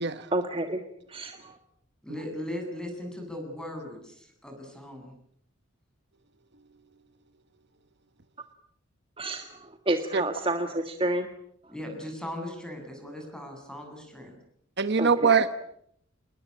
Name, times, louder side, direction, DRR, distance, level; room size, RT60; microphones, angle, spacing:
voice 1, 0.3-0.8 1.1-1.6 9.2-11.3 15.0-15.3, right 1 dB, 25° right, 6 dB, 1.6 m, -29 dB
voice 2, 2.0-5.1 11.7-14.3, left 1 dB, 5° left, 3 dB, 7.8 m, -38 dB
voice 3, 14.8-15.5, right 5 dB, 55° right, 11 dB, 1.1 m, -22 dB
28.0 x 21.0 x 8.7 m, 0.72 s
head